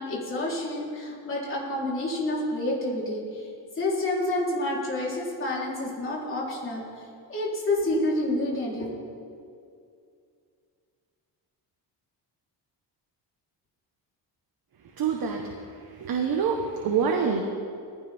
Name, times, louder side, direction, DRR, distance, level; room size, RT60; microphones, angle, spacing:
voice 1, 0.0-3.5 3.8-6.8 7.3-8.9, left 1 dB, 30° left, -5 dB, 3.8 m, -28 dB
voice 2, 15.0-15.6 15.9-17.4, right 6 dB, 55° right, 2 dB, 1.3 m, -26 dB
21.0 x 15.5 x 3.6 m, 2.4 s
cardioid pair, 170°, 43 cm